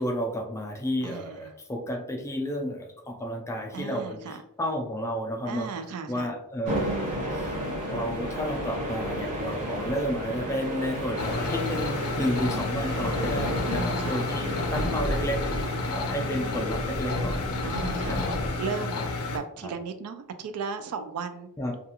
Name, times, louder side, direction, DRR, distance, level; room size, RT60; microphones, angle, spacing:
voice 1, 0.0-5.7 6.1-7.0 7.3-7.5 7.9-15.4 15.9-17.4 18.1-18.4 18.8-19.1 19.6-19.7 21.6-21.8, equal, 15° left, 2 dB, 0.3 m, -32 dB
voice 2, 1.0-1.5 3.7-4.4 5.4-6.3 12.5-12.8 13.7-14.2 15.9-16.6 17.6-18.2 18.6-19.0 19.3-21.5, right 5 dB, 80° right, 9 dB, 0.3 m, -36 dB
sound 1, 6.6-18.5, equal, 35° right, 0.7 m, -32 dB
sound 2, 11.2-19.4, left 3 dB, 75° left, 0.5 m, -31 dB
2.3 x 2.3 x 2.8 m, 0.76 s
head